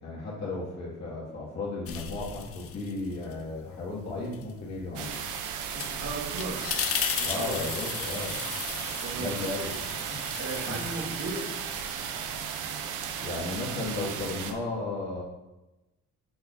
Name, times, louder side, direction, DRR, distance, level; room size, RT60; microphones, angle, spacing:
voice 1, 0.0-5.2 7.2-8.4 9.2-10.2 10.7-10.8 13.2-15.2, left 2 dB, 65° left, -6 dB, 2.2 m, -34 dB
sound 1, 1.9-3.4 3.8-12.5, left 8 dB, 50° left, 0.6 m, -37 dB
sound 2, 5.0-14.5, right 7 dB, 85° right, 0.7 m, -35 dB
voice 2, 5.7-6.6 7.2-7.6 9.0-9.4 10.4-11.5, right 3 dB, 65° right, -2 dB, 1.8 m, -36 dB
8.2 x 4.4 x 2.7 m, 1.0 s
cardioid pair, 90°, 30 cm